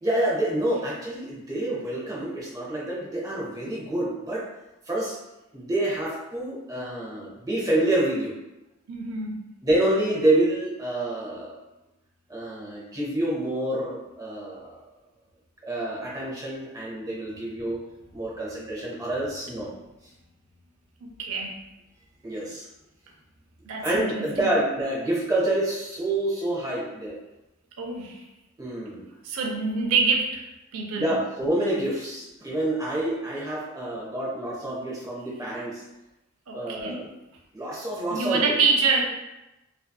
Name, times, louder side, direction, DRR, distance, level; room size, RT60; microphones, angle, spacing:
voice 1, 0.0-4.4 4.9-5.2 5.5-8.3 9.6-11.6 12.3-14.8 15.6-17.8 18.1-19.7 22.2-22.7 23.8-27.2 28.6-29.1 31.0-35.8 36.5-37.1 37.5-38.5, right 1 dB, 15° right, -5 dB, 0.6 m, -27 dB
voice 2, 8.9-9.5 21.0-21.5 23.6-24.5 27.8-28.2 29.2-30.4 30.7-31.1 36.5-37.1 38.1-39.0, right 4 dB, 85° right, 1 dB, 0.4 m, -26 dB
2.6 x 2.2 x 2.2 m, 0.96 s
head